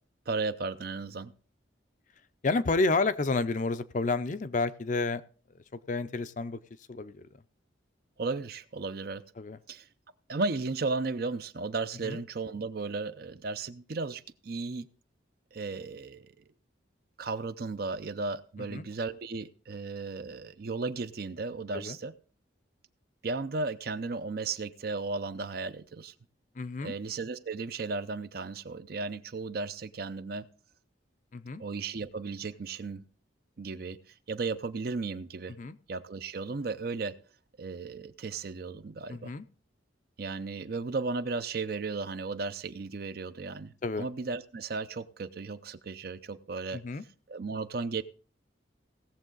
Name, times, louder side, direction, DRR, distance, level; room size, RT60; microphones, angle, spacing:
voice 1, 0.3-1.3 8.2-9.2 9.7-9.9 10.3-14.9 15.5-16.3 17.2-22.1 23.2-26.1 26.8-30.5 31.6-33.0 33.6-34.0 34.3-35.5 35.9-37.2 37.6-39.3 40.2-46.8 47.3-48.0, right 3 dB, 50° right, 13 dB, 0.5 m, -35 dB
voice 2, 2.4-5.2 5.7-6.6 6.9-7.3 9.4-9.6 12.0-12.2 18.7-18.9 21.7-22.0 26.6-26.9 31.3-31.6 35.6-35.8 39.1-39.4 43.8-44.1 46.7-47.0, left 3 dB, 40° left, 12 dB, 0.5 m, -30 dB
17.5 x 7.3 x 3.9 m, 0.40 s
head